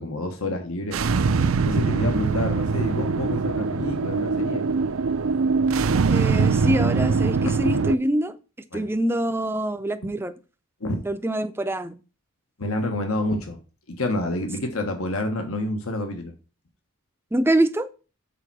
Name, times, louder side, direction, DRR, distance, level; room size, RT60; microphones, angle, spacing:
voice 1, 0.0-4.6 5.9-6.0 7.5-7.6 8.7-8.9 10.8-11.0 12.6-13.6 13.9-16.3, left 1 dB, 80° left, 1.3 m, -28 dB
sound 1, 0.9-8.0, right 4 dB, 70° right, 0.5 m, -22 dB
voice 2, 6.1-8.4 8.7-10.3 11.0-11.9 17.3-17.9, right 1 dB, 10° right, 0.5 m, -24 dB
6.7 x 4.5 x 6.1 m
head